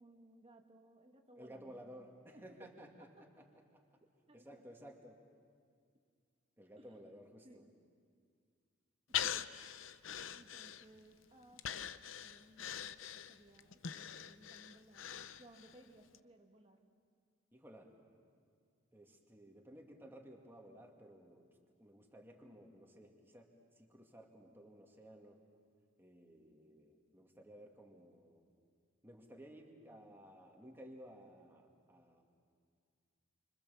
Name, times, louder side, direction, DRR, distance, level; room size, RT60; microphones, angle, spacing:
voice 1, 0.0-2.7 4.3-4.6 6.8-7.0 7.4-7.7 9.1-9.4 10.3-12.7 13.1-15.0 15.4-16.8, right 1 dB, 30° right, 3 dB, 1.6 m, -62 dB
voice 2, 1.4-3.5 3.7-3.8 4.3-5.2 6.6-7.7 17.5-18.0 18.9-21.5 21.8-25.4 26.0-28.4 29.0-32.2, equal, 10° right, 1 dB, 2.4 m, -56 dB
Breathing, 9.1-11.1 11.6-15.8 16.1-16.2, left 9 dB, 75° left, 0.7 m, -42 dB
28.0 x 25.5 x 7.2 m, 2.1 s
head